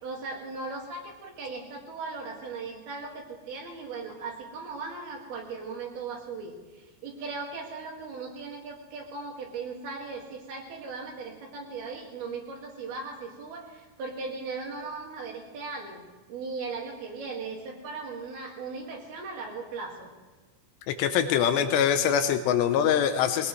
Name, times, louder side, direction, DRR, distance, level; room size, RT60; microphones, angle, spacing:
voice 1, 0.0-16.0 16.3-20.1, right 4 dB, 55° right, 0 dB, 3.7 m, -38 dB
voice 2, 20.9-23.5, left 8 dB, 80° left, 8 dB, 2.5 m, -24 dB
22.0 x 19.0 x 3.3 m, 1.3 s
omnidirectional pair, 5.8 m